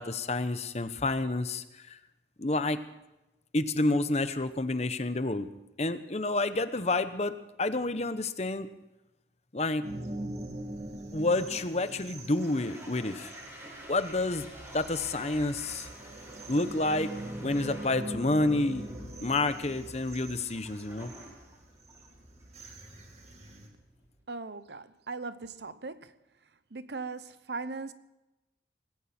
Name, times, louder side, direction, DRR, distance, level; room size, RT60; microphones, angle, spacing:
voice 1, 0.0-2.0 2.4-2.8 3.5-5.5 5.8-8.7 9.5-9.9 11.1-13.3 13.9-14.5 14.7-15.9 16.5-17.1 17.4-21.1, left 2 dB, 35° left, 0.9 m, -29 dB
sound 1, 9.8-23.7, right 1 dB, 35° right, 2.7 m, -43 dB
Toilet flush, 11.1-24.2, equal, 15° right, 5.6 m, -51 dB
voice 2, 24.3-26.1 26.7-27.9, right 3 dB, 65° right, 0.9 m, -39 dB
20.0 x 16.5 x 4.4 m
head